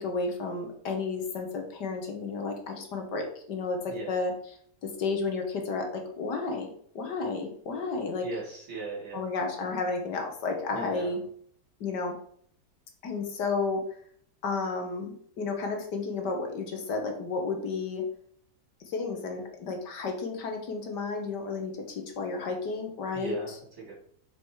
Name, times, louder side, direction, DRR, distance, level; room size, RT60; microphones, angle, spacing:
voice 1, 0.0-4.3 4.8-8.3 9.1-11.2 11.8-12.1 13.0-13.8 14.4-18.1 18.9-23.4, left 4 dB, 75° left, 4 dB, 1.8 m, -32 dB
voice 2, 8.2-9.2 10.7-11.1 23.1-23.9, right 4 dB, 60° right, -4 dB, 3.6 m, -38 dB
6.3 x 5.2 x 4.6 m, 0.62 s
omnidirectional pair, 1.9 m